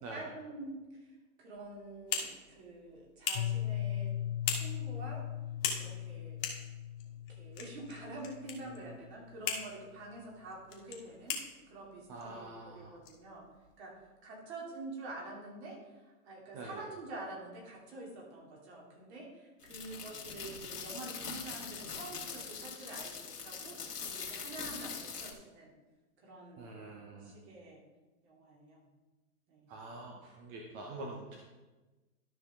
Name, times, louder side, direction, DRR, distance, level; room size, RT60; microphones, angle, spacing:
voice 1, 0.1-1.1 1.4-4.1 4.5-5.2 5.7-6.4 7.3-11.4 11.7-13.4 13.8-25.7 26.2-26.7 27.2-27.8 28.2-28.9 29.5-29.7, right 2 dB, 45° right, -2 dB, 2.8 m, -47 dB
sound 1, 1.6-13.9, left 6 dB, 35° left, 1.6 m, -42 dB
Piano, 3.3-9.0, left 11 dB, 60° left, 0.6 m, -39 dB
voice 2, 12.1-13.0 16.5-16.8 26.6-27.4 29.7-31.4, right 2 dB, 20° right, 0 dB, 0.7 m, -46 dB
sound 2, 19.6-25.3, left 6 dB, 85° left, 1.9 m, -43 dB
12.5 x 5.8 x 3.6 m, 1.2 s
hypercardioid pair, 140°, 46 cm